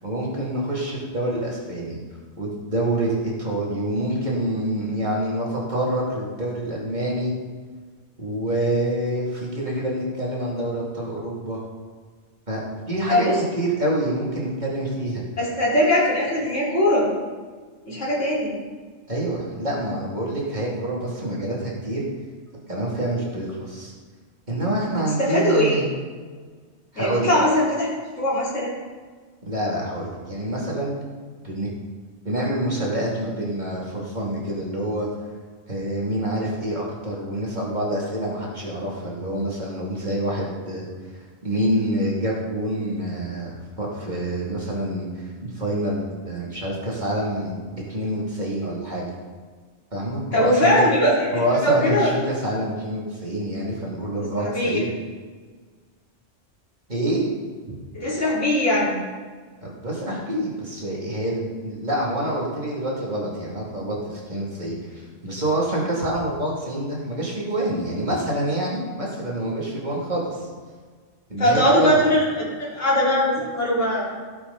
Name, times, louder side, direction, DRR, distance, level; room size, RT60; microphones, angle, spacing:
voice 1, 0.0-2.0 2.3-7.3 8.2-11.6 12.5-13.3 13.5-15.2 19.1-22.0 22.7-23.9 24.5-25.9 26.9-27.3 29.4-30.9 31.4-31.7 32.2-35.1 35.7-40.9 41.4-49.1 49.9-50.9 51.3-54.9 56.9-57.3 59.6-70.5 71.3-72.0, right 1 dB, 40° right, -5 dB, 3.2 m, -27 dB
voice 2, 13.1-13.4 15.4-17.1 17.9-18.6 25.2-25.8 27.0-27.9 28.2-28.7 50.3-52.1 54.4-54.8 57.9-59.0 71.4-74.1, equal, 85° left, -7 dB, 3.9 m, -20 dB
16.5 x 8.3 x 4.3 m, 1.5 s
omnidirectional pair, 1.2 m